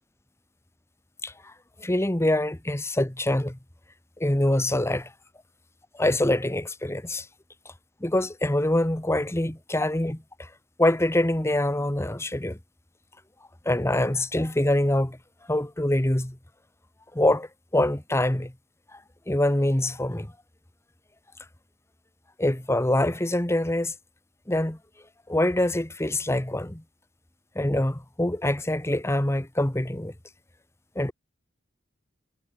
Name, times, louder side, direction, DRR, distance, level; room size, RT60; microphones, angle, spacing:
voice 1, 1.2-1.5 1.8-3.6 4.2-5.1 5.9-7.3 8.0-10.5 10.8-12.6 13.6-15.2 15.5-16.4 17.1-17.5 17.7-18.5 18.9-19.0 19.3-20.3 22.4-23.9 24.5-24.8 25.3-26.8 27.5-30.1 30.9-31.1, left 1 dB, 15° left, 1.2 m, -25 dB
head